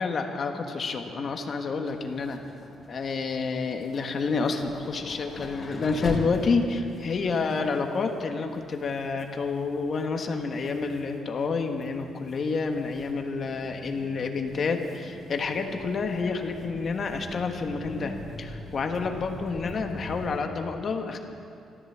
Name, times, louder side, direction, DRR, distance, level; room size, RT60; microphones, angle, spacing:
voice 1, 0.0-2.4 2.9-21.2, left 4 dB, 50° left, 5 dB, 1.4 m, -29 dB
sound 1, 1.8-20.4, left 1 dB, 35° left, 3.3 m, -42 dB
13.5 x 13.5 x 7.4 m, 2.5 s
cardioid pair, 90°, 0 cm